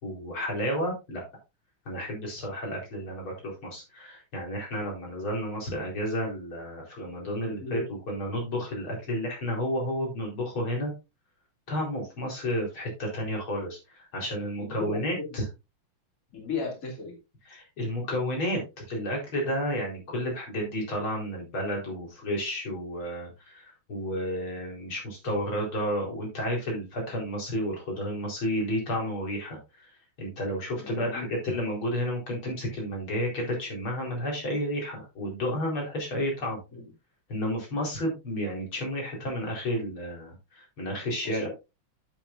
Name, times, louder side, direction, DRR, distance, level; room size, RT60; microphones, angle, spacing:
voice 1, 0.0-1.2 1.9-10.9 11.7-15.4 17.5-18.6 18.9-29.9 30.2-36.6 37.3-41.5, equal, 85° left, -1 dB, 5.2 m, -31 dB
voice 2, 14.6-15.0 15.3-15.4 16.3-17.1 30.8-31.3 36.7-36.8 41.2-41.5, left 4 dB, 40° left, 0 dB, 3.3 m, -35 dB
12.0 x 7.9 x 2.6 m, 0.26 s
omnidirectional pair, 2.2 m